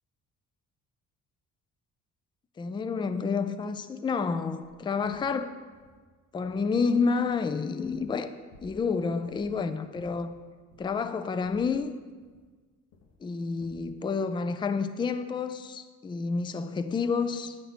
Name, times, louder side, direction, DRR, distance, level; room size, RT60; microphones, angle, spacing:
voice 1, 2.6-5.5 6.3-8.3 8.6-10.3 10.8-11.9 13.2-17.6, left 5 dB, 15° left, 10 dB, 0.3 m, -29 dB
sound 1, 4.6-4.7 5.0-5.3 5.7-6.0 6.4-6.8 7.2-8.2 8.5-9.0 9.2-9.6 9.9-11.0 11.4-12.6 12.9-13.2 13.6-13.9, left 2 dB, 85° left, 1.1 m, -56 dB
9.2 x 4.2 x 5.8 m, 1.5 s
cardioid pair, 110°, 31 cm